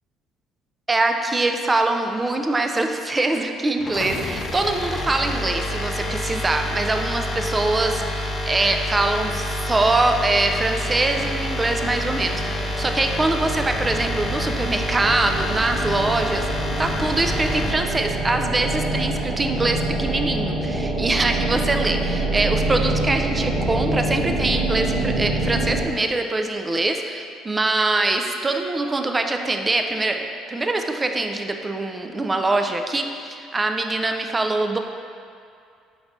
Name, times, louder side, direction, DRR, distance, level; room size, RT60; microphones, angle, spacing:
voice 1, 0.9-34.8, right 2 dB, 20° right, 5 dB, 0.3 m, -23 dB
sound 1, 3.8-17.8, left 1 dB, 40° left, 0.5 m, -28 dB
sound 2, 9.4-25.9, right 2 dB, 65° right, 1.4 m, -27 dB
4.5 x 4.0 x 2.6 m, 2.3 s
supercardioid pair, 80°, 0 cm